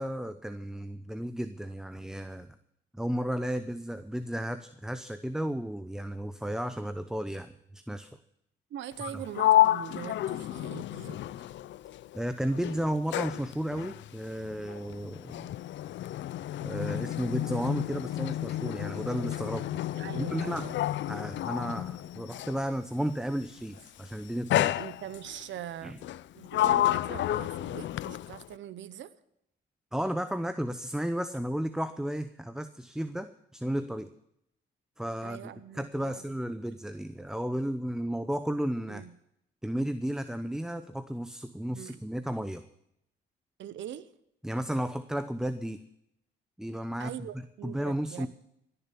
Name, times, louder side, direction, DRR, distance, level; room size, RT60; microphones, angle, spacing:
voice 1, 0.0-2.5 2.9-8.1 12.1-15.5 16.6-19.8 20.1-20.7 21.1-24.8 25.8-26.0 29.9-34.1 35.0-35.4 35.7-39.0 39.6-42.6 44.4-45.8 46.6-47.1 47.6-48.3, equal, 5° right, 11 dB, 0.7 m, -33 dB
voice 2, 8.7-11.5 19.9-20.8 24.7-26.0 26.4-29.1 35.2-36.2 38.9-39.1 41.7-42.0 43.6-44.1 47.0-48.3, right 10 dB, 70° right, 15 dB, 0.9 m, -42 dB
Sliding door, 8.9-12.2 12.5-22.7 23.6-23.9 24.5-25.4 26.0-28.5, left 13 dB, 65° left, 0.5 m, -30 dB
17.5 x 6.9 x 8.4 m, 0.78 s
cardioid pair, 90°, 20 cm